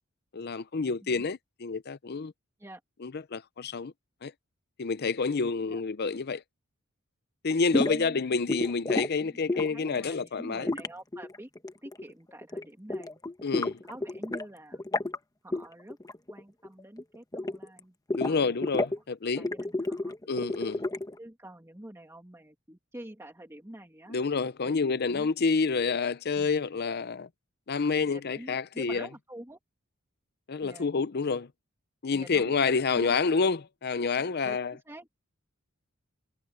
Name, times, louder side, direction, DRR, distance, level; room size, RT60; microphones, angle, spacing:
voice 1, 0.3-2.3 3.0-3.9 4.2-4.3 4.8-6.4 7.4-10.7 13.4-13.8 18.1-19.4 20.3-20.9 24.1-27.3 27.7-29.1 30.5-31.5 32.0-34.7, left 4 dB, 50° left, 0.6 m, -28 dB
sound 1, 7.7-8.0 8.5-9.1 9.5-9.9 10.7-12.1 12.4-12.6 12.9-14.4 14.7-15.2 15.5-15.6 15.9-16.4 16.6-17.8 18.1-19.0 19.4-21.2, left 2 dB, 15° left, 1.0 m, -31 dB
voice 2, 7.8-8.4 8.6-8.7 9.2-9.4 9.7-11.5 11.8-13.2 13.8-14.8 15.4-16.0 16.3-18.0 18.2-18.6 19.2-20.2 21.2-24.2 24.6-25.6 26.4-26.5 28.0-29.6 30.6-30.9 32.1-32.6 32.9-33.2 34.4-35.2, right 1 dB, 10° right, 2.0 m, -47 dB
head